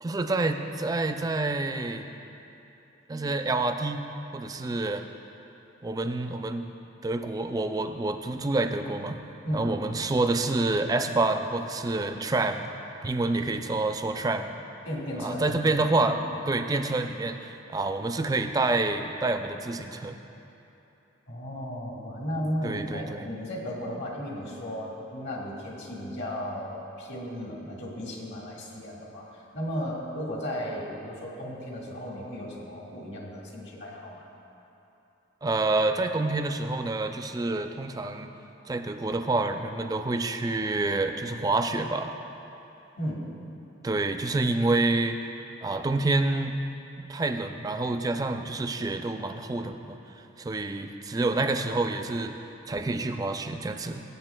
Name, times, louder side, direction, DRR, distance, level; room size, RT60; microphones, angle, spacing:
voice 1, 0.0-2.1 3.1-4.0 4.3-5.0 5.8-6.7 7.0-9.2 9.5-12.7 13.0-14.5 15.2-16.2 16.5-20.2 22.6-23.2 35.4-38.3 38.7-42.1 43.8-45.2 45.6-46.6 47.0-50.0 50.4-52.4 52.7-54.0, right 2 dB, 20° right, 6 dB, 0.3 m, -28 dB
voice 2, 14.9-15.5 21.3-34.3 43.0-43.2, equal, 65° left, -3 dB, 1.7 m, -35 dB
18.0 x 8.2 x 2.2 m, 3.0 s
head